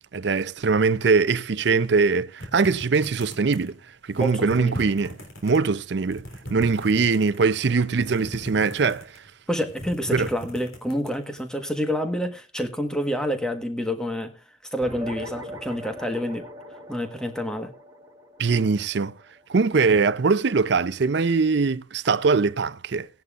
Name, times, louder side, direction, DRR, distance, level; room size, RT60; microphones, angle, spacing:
voice 1, 0.1-3.8 4.1-5.2 5.4-6.2 6.5-9.1 10.1-10.3 18.4-19.1 19.5-23.1, right 4 dB, 55° right, 0.5 m, -22 dB
sound 1, 2.4-3.8 4.1-5.6 6.0-7.4 7.9-9.3 9.6-11.4, equal, 85° left, 3.5 m, -38 dB
voice 2, 4.2-4.8 9.5-14.3 14.7-16.5 16.9-17.7, equal, 5° left, 1.3 m, -28 dB
sound 2, 14.8-19.6, equal, 15° right, 3.6 m, -40 dB
17.5 x 10.5 x 2.5 m
head